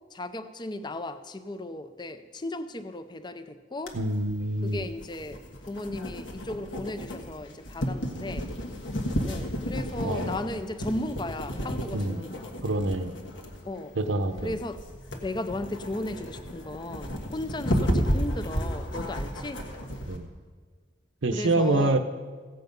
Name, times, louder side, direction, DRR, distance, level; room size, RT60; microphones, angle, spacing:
voice 1, 0.1-4.0 4.6-8.5 9.2-12.5 13.6-13.9 14.4-14.8 15.1-19.7 21.3-22.0, left 2 dB, 25° left, 11 dB, 0.5 m, -35 dB
sound 1, 3.9-20.2, equal, 80° left, 1.5 m, -33 dB
voice 2, 3.9-4.9 10.0-10.3 11.9-12.2 12.6-13.1 14.0-14.6 20.1-20.3 21.2-22.0, right 2 dB, 85° right, 8 dB, 0.8 m, -26 dB
16.0 x 7.7 x 5.3 m, 1.5 s
head